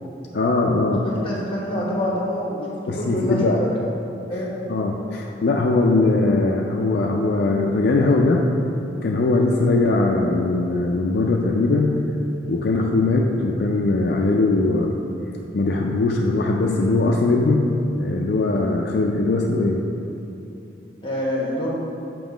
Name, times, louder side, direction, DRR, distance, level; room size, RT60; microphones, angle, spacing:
voice 1, 0.3-1.0 2.9-3.6 4.7-8.4 9.0-12.0 12.5-15.0 15.5-17.7 17.9-19.8, left 2 dB, 60° left, 0 dB, 0.4 m, -20 dB
voice 2, 1.0-3.8 4.3-4.5 21.0-21.7, left 1 dB, 30° left, -3 dB, 1.1 m, -26 dB
7.2 x 3.0 x 5.0 m, 2.8 s
head